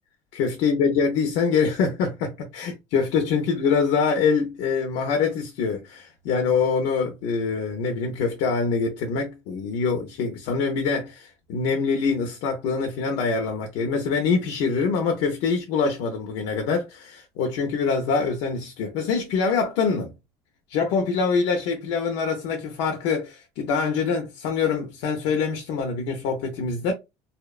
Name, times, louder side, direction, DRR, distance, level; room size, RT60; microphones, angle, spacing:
voice 1, 0.3-20.1 20.7-26.9, left 5 dB, 80° left, 0.5 m, -24 dB
2.7 x 2.1 x 2.3 m
cardioid pair, 140°, 11 cm